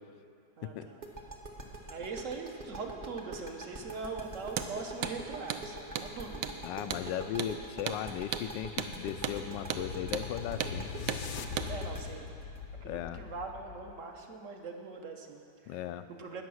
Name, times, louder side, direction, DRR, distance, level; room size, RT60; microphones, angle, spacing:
voice 1, 0.6-1.0 1.9-6.6 11.7-12.4 12.8-16.4, right 4 dB, 50° right, 3 dB, 1.2 m, -42 dB
sound 1, 1.0-13.8, right 2 dB, 30° right, 1.0 m, -44 dB
Hammer, 4.5-4.7 5.0-5.2 5.5-5.6 6.0-6.1 6.4-6.6 6.9-7.1 7.4-7.5 7.9-8.0 8.3-8.5 8.8-8.9 9.2-9.4 9.7-9.9 10.1-10.3 10.6-10.8 11.1-11.2 11.6-11.7, right 9 dB, 75° right, 1.3 m, -34 dB
voice 2, 6.6-10.9 12.8-13.2 15.7-16.1, left 10 dB, 80° left, 11 dB, 1.2 m, -37 dB
sound 2, 8.2-14.1, left 6 dB, 65° left, 1.1 m, -43 dB
19.5 x 6.8 x 6.3 m, 2.6 s
omnidirectional pair, 1.9 m